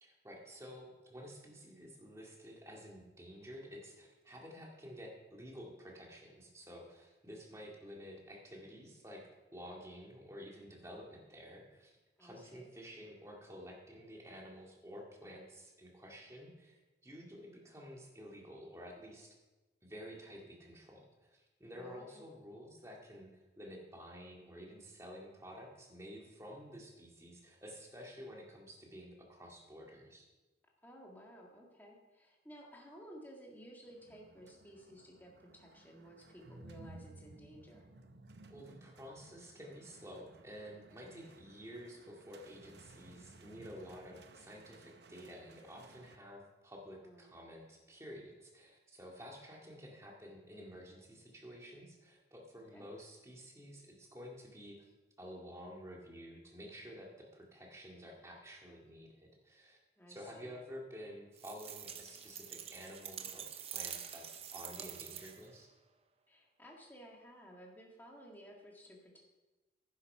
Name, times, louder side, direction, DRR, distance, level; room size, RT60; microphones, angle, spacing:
voice 1, 0.0-9.2 9.5-11.9 12.2-19.3 19.8-30.3 38.5-54.9 55.2-59.8 60.1-65.7, equal, 15° right, -1 dB, 2.0 m, -51 dB
voice 2, 12.2-12.7 21.7-22.2 30.8-37.9 40.9-41.3 47.0-47.3 52.6-52.9 60.0-60.5 66.3-69.2, equal, 10° left, -1 dB, 1.8 m, -55 dB
sound 1, 33.9-46.2, right 2 dB, 65° right, 0.8 m, -58 dB
sound 2, 61.4-65.6, right 9 dB, 30° right, 0.6 m, -46 dB
10.5 x 8.4 x 5.5 m, 1.1 s
head